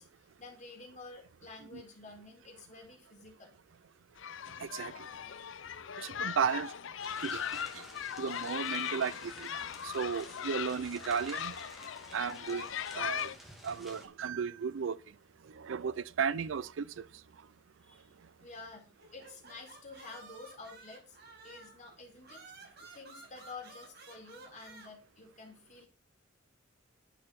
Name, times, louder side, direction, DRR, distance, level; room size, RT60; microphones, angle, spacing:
voice 1, 0.0-3.5 5.7-5.8 17.8-18.1 18.4-21.2 21.4-25.9, left 3 dB, 40° left, 4.0 m, -50 dB
sound 1, 4.2-13.4, left 8 dB, 75° left, 0.6 m, -39 dB
voice 2, 4.6-4.9 6.0-6.7 7.2-7.4 7.7-7.8 8.2-9.5 9.8-11.5 12.1-12.7 12.9-13.3 13.6-15.0 15.5-17.1, right 6 dB, 75° right, 0.4 m, -34 dB
sound 2, 7.0-14.1, equal, ahead, 2.8 m, -51 dB
sound 3, 19.0-21.8 22.2-24.9, right 3 dB, 60° right, 5.0 m, -53 dB
9.9 x 8.7 x 4.2 m
head